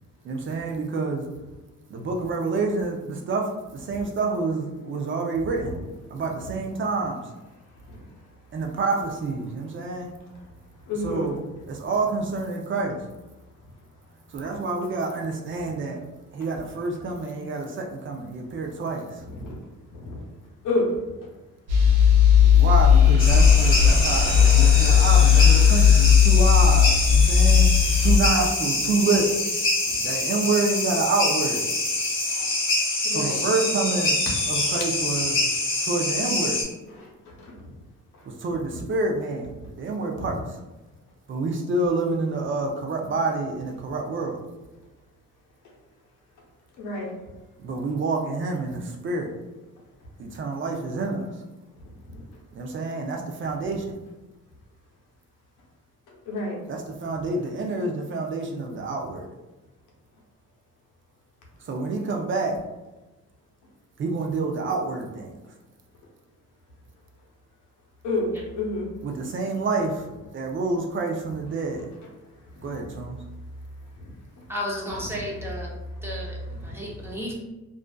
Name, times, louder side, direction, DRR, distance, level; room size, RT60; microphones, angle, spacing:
voice 1, 0.2-1.2 1.9-3.5 3.7-5.7 6.1-7.2 8.5-10.1 11.0-11.4 11.7-13.0 14.3-16.0 16.3-19.2 22.4-27.7 28.0-29.3 30.0-31.7 33.1-34.2 34.5-35.4 35.8-36.6 38.4-39.5 39.8-40.4 41.3-44.4 47.6-49.3 50.2-51.2 52.5-53.9 56.7-59.3 61.7-62.6 64.0-65.3 69.0-70.0 70.3-71.9 72.6-73.2, right 3 dB, 40° right, 1 dB, 0.4 m, -27 dB
voice 2, 10.9-11.3 19.4-19.6 19.9-20.2 20.6-20.9 28.4-28.5 32.3-32.5 33.0-33.4 37.0-37.1 40.1-40.3 46.8-47.1 56.3-56.6 68.0-68.9 75.1-75.2, left 2 dB, 90° left, -2 dB, 0.8 m, -28 dB
sound 1, 21.7-28.2, left 7 dB, 90° right, 0.7 m, -16 dB
sound 2, 23.2-36.6, left 2 dB, 45° left, 0.8 m, -25 dB
voice 3, 74.5-75.7 76.0-77.3, equal, 10° right, -4 dB, 0.7 m, -33 dB
2.4 x 2.3 x 2.2 m, 1.1 s
cardioid pair, 90°, 30 cm